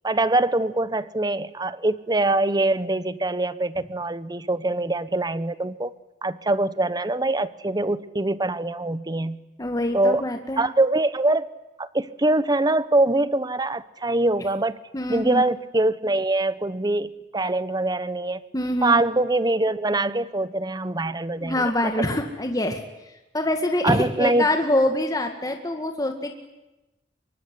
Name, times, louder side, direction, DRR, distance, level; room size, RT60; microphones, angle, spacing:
voice 1, 0.0-5.9 6.2-9.4 9.9-10.2 10.6-11.5 11.8-14.8 15.1-18.4 18.8-21.9 23.8-24.5, right 2 dB, 25° right, 15 dB, 1.0 m, -23 dB
voice 2, 9.6-10.6 14.9-15.4 18.5-19.0 21.4-22.8 23.3-26.3, left 1 dB, 20° left, 4 dB, 2.0 m, -24 dB
25.0 x 23.0 x 9.7 m, 0.99 s
head